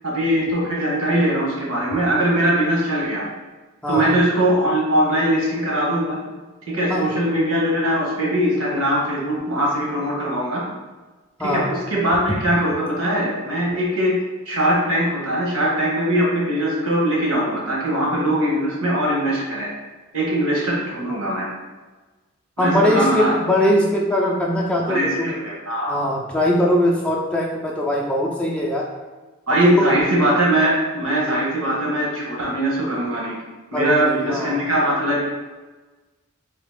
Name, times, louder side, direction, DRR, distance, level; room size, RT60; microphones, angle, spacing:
voice 1, 0.0-3.2 3.9-6.2 6.7-10.6 11.4-14.2 14.5-19.7 20.1-21.5 22.6-23.4 24.9-25.9 29.5-33.3 33.7-35.2, right 1 dB, 80° right, -4 dB, 1.2 m, -21 dB
voice 2, 3.8-4.1 6.9-7.0 11.4-11.7 22.6-25.3 25.9-28.9 29.6-29.9 33.7-34.6, left 1 dB, 5° left, -3 dB, 0.4 m, -21 dB
3.8 x 3.0 x 3.5 m, 1.3 s
head